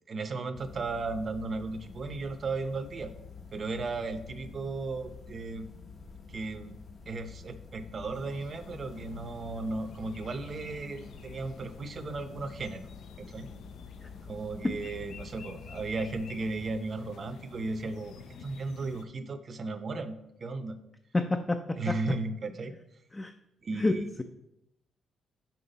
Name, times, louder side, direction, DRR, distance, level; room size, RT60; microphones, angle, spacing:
voice 1, 0.1-3.1 3.5-5.7 6.3-6.7 7.1-12.9 13.2-13.5 14.3-20.8 21.8-22.7 23.6-24.1, right 3 dB, 40° right, 10 dB, 0.7 m, -35 dB
sound 1, 0.5-16.7, left 4 dB, 45° left, 0.9 m, -48 dB
sound 2, 8.1-19.0, left 6 dB, 70° left, 0.5 m, -50 dB
voice 2, 21.1-22.0 23.1-23.3 23.7-24.2, left 2 dB, 20° left, 7 dB, 0.4 m, -29 dB
6.0 x 5.7 x 4.0 m, 0.83 s
cardioid pair, 90°, 0 cm